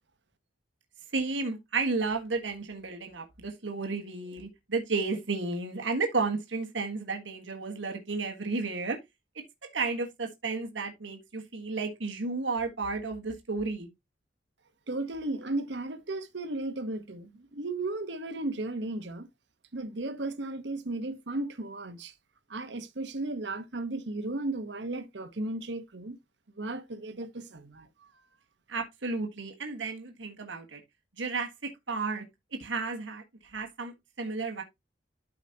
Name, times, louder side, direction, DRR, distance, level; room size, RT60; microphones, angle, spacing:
voice 1, 1.1-9.0 9.6-13.9 28.7-30.8 31.2-32.2 32.6-34.6, right 3 dB, 90° right, 1.5 m, -32 dB
voice 2, 14.9-19.3 19.7-22.1 22.5-26.2 26.6-27.9, right 2 dB, 70° right, 1.1 m, -35 dB
12.5 x 5.0 x 2.8 m
head